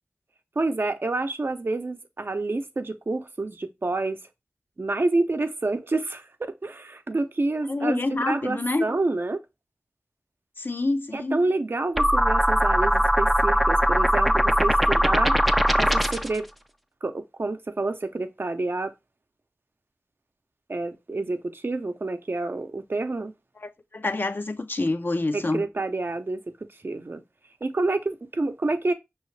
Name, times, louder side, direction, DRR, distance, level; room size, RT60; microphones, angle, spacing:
voice 1, 0.6-4.2 4.8-9.4 11.1-15.4 15.7-16.5 17.0-18.9 20.7-23.3 25.3-26.4 26.8-27.2 27.6-28.9, right 2 dB, 60° right, 0.6 m, -28 dB
voice 2, 7.7-8.9 10.6-11.4 23.6-25.6, left 2 dB, 50° left, 0.5 m, -27 dB
sound 1, 12.0-16.4, equal, ahead, 0.4 m, -20 dB
5.5 x 3.0 x 3.2 m
wide cardioid pair, 40°, 4 cm